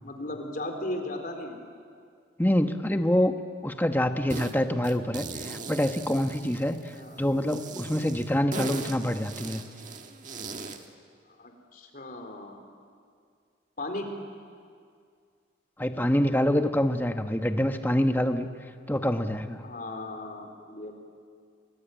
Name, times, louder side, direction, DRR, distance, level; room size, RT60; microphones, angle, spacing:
voice 1, 0.0-1.6 6.9-7.2 11.4-12.6 13.8-14.1 19.6-21.0, left 1 dB, 45° left, 4 dB, 3.7 m, -36 dB
voice 2, 2.4-3.3 3.6-9.6 15.8-18.5 18.9-19.6, left 1 dB, 10° left, 7 dB, 1.1 m, -26 dB
sound 1, 4.3-4.5 4.8-7.0 7.5-10.9, right 4 dB, 40° right, 1.6 m, -39 dB
29.0 x 21.5 x 9.1 m, 2.2 s
head